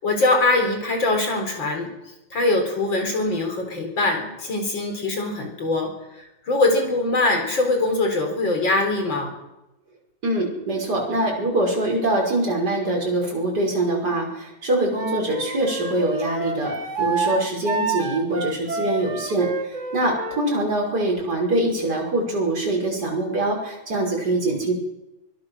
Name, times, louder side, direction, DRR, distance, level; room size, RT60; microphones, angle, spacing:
voice 1, 0.0-1.9 2.3-5.9 6.1-9.3, left 2 dB, 30° left, 4 dB, 4.6 m, -22 dB
voice 2, 10.2-24.7, right 2 dB, 25° right, -1 dB, 5.9 m, -24 dB
Wind instrument woodwind instrument, 14.9-20.4, right 3 dB, 50° right, 0.8 m, -28 dB
24.0 x 21.0 x 6.4 m, 0.97 s
omnidirectional pair, 4.6 m